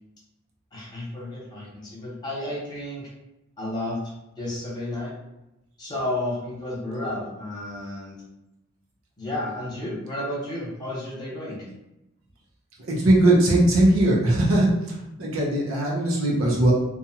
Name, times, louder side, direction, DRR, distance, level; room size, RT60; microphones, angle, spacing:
voice 1, 0.7-3.0 3.6-4.0 4.4-5.1 5.8-8.2 9.2-11.7, left 1 dB, 20° left, -6 dB, 1.0 m, -32 dB
voice 2, 12.9-14.7 15.2-16.7, right 1 dB, 80° right, -3 dB, 0.8 m, -19 dB
2.6 x 2.3 x 2.8 m, 0.91 s
head